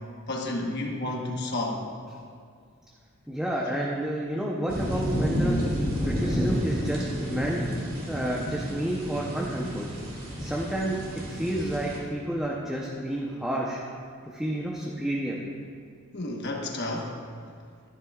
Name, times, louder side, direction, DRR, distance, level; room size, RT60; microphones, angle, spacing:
voice 1, 0.3-1.8 16.1-17.2, left 2 dB, 55° left, 0 dB, 1.2 m, -31 dB
voice 2, 3.3-5.6 6.0-7.6 8.1-9.9 10.4-11.0 11.3-13.8 14.2-15.4, right 1 dB, 5° right, -4 dB, 0.8 m, -30 dB
sound 1, 4.7-12.0, equal, 45° right, 2.2 m, -30 dB
12.5 x 11.0 x 2.4 m, 2.2 s
head